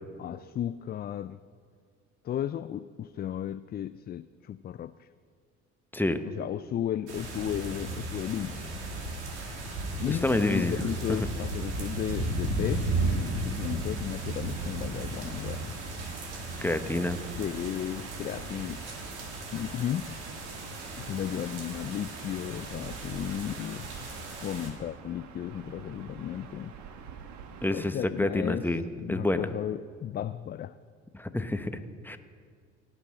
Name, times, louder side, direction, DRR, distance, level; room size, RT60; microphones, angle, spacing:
voice 1, 0.2-1.4 2.2-5.1 6.4-8.7 10.0-15.7 17.4-18.8 19.5-20.2 21.0-24.1 24.4-26.7 27.7-28.6 29.0-30.7, left 10 dB, 30° left, 13 dB, 0.4 m, -34 dB
sound 1, 7.1-24.7, right 2 dB, 85° right, 2.1 m, -35 dB
voice 2, 10.1-11.3 16.6-17.2 27.6-29.5 31.1-32.2, left 2 dB, 5° left, 9 dB, 1.0 m, -29 dB
Gull seagull / Ocean, 14.5-27.9, right 6 dB, 60° right, 1.3 m, -46 dB
17.0 x 6.2 x 8.6 m, 2.1 s
hypercardioid pair, 60°, 33 cm